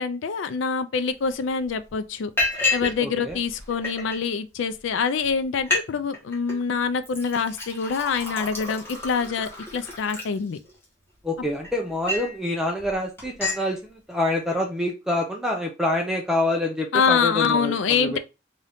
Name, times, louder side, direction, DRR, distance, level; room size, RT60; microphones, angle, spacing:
voice 1, 0.0-2.3 2.7-10.6 16.9-18.2, left 5 dB, 85° left, 0.4 m, -25 dB
Liquid, 1.2-1.3 1.6-1.9 2.4-3.0 3.3-4.2 4.8-4.9 5.2-5.3 5.6-5.9 6.1-6.6 7.0-10.8 11.4-12.4 12.8-12.9 13.2-13.6, left 3 dB, 15° left, 1.3 m, -29 dB
voice 2, 3.0-3.4 11.2-18.2, left 1 dB, 5° right, 0.5 m, -26 dB
3.7 x 2.7 x 3.4 m
head